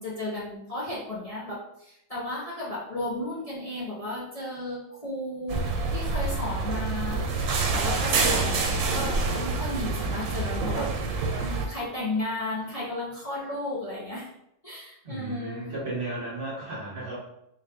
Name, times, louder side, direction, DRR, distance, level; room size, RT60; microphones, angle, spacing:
voice 1, 0.0-5.6 5.9-10.9 11.4-14.3 14.6-15.7, left 1 dB, 30° left, -8 dB, 1.0 m, -34 dB
sound 1, 5.5-11.7, right 3 dB, 75° right, 1.0 m, -27 dB
voice 2, 15.0-17.2, right 2 dB, 45° right, -5 dB, 1.2 m, -34 dB
3.8 x 2.6 x 3.6 m, 0.79 s
omnidirectional pair, 1.4 m